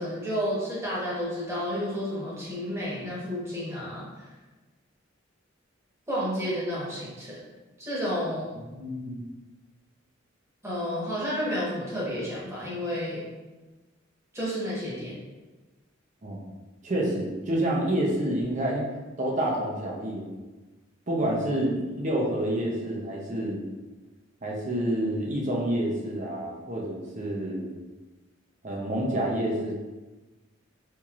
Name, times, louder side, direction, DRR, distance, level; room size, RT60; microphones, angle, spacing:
voice 1, 0.0-4.0 6.1-7.4 7.8-8.5 10.6-13.2 14.3-15.2, equal, 15° right, -8 dB, 1.2 m, -31 dB
voice 2, 8.8-9.2 16.2-16.4 16.8-18.8 19.2-20.2 21.1-23.6 24.4-27.7 28.6-29.8, right 1 dB, 40° right, -3 dB, 0.7 m, -28 dB
4.5 x 2.8 x 2.5 m, 1.2 s
head